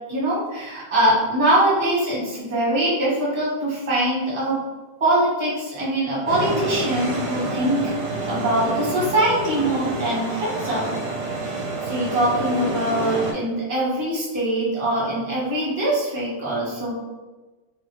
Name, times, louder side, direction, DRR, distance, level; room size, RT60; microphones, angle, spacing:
voice 1, 0.1-4.6 5.0-8.0 8.3-10.9 11.4-11.5 11.8-16.9, right 1 dB, 20° right, -8 dB, 1.1 m, -23 dB
sound 1, 6.3-13.3, right 2 dB, 70° right, 1.1 m, -28 dB
2.9 x 2.6 x 3.0 m, 1.2 s
omnidirectional pair, 2.0 m